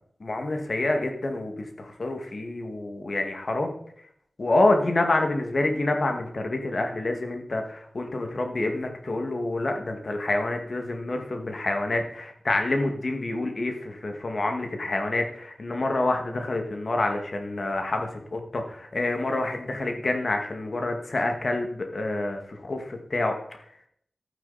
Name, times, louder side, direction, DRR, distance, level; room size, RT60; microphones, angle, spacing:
voice 1, 0.2-3.7 4.4-23.6, left 2 dB, 65° left, 4 dB, 2.1 m, -27 dB
12.0 x 9.3 x 4.2 m, 0.66 s
cardioid pair, 40°, 0 cm